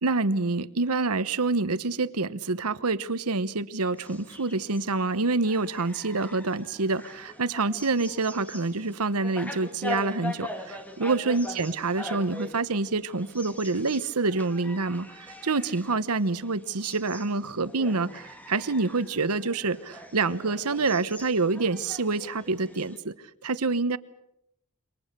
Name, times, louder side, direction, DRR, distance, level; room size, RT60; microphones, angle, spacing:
voice 1, 0.0-23.1 23.4-24.0, right 3 dB, 85° right, 1.1 m, -27 dB
sound 1, 4.0-23.0, left 1 dB, 5° left, 2.0 m, -42 dB
27.5 x 24.0 x 6.7 m
head